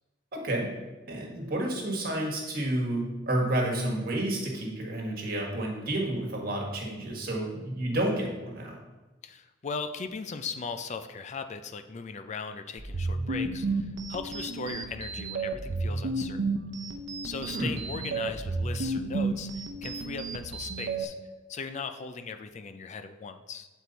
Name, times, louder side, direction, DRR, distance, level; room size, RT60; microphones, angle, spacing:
voice 1, 0.3-0.7 1.1-8.8 17.5-17.7, right 1 dB, 55° right, 0 dB, 1.5 m, -30 dB
voice 2, 9.2-16.6 17.2-21.1 21.5-23.7, left 5 dB, 40° left, 8 dB, 0.4 m, -38 dB
sound 1, 12.8-21.0, right 3 dB, 70° right, 0.7 m, -32 dB
8.2 x 4.6 x 4.0 m, 1.2 s
head